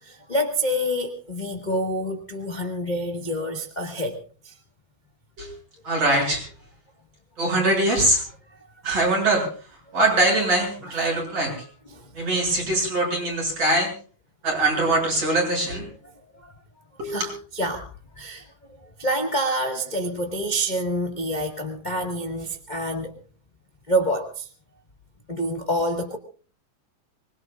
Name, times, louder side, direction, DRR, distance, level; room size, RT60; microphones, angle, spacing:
voice 1, 0.0-4.5 10.8-11.0 11.9-12.1 16.0-16.5 17.0-17.9 18.1-23.2 23.9-24.5 25.3-26.2, equal, 35° left, 3 dB, 0.6 m, -27 dB
voice 2, 5.8-6.5 7.4-8.2 8.8-9.5 9.9-11.7 12.1-13.9 14.4-15.9 17.0-17.3, right 2 dB, 45° right, 0 dB, 8.1 m, -22 dB
24.5 x 21.0 x 2.4 m, 0.40 s
omnidirectional pair, 3.8 m